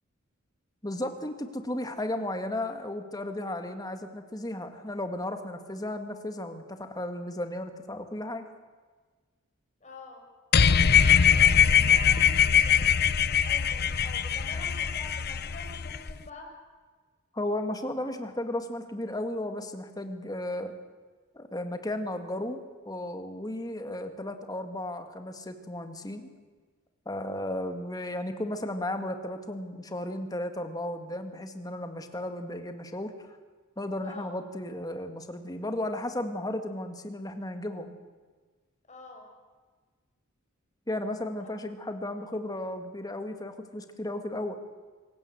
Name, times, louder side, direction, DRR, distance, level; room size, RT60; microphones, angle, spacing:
voice 1, 0.8-8.4 17.3-20.7 21.3-26.3 27.1-33.3 33.8-37.9 40.9-44.5, left 1 dB, 20° left, 7 dB, 1.9 m, -34 dB
voice 2, 9.8-10.2 11.2-16.5 34.0-34.3 38.9-39.3, left 2 dB, 35° left, 1 dB, 5.6 m, -46 dB
sound 1, 10.5-16.1, left 7 dB, 50° left, 0.7 m, -22 dB
25.0 x 16.5 x 8.0 m, 1.4 s
head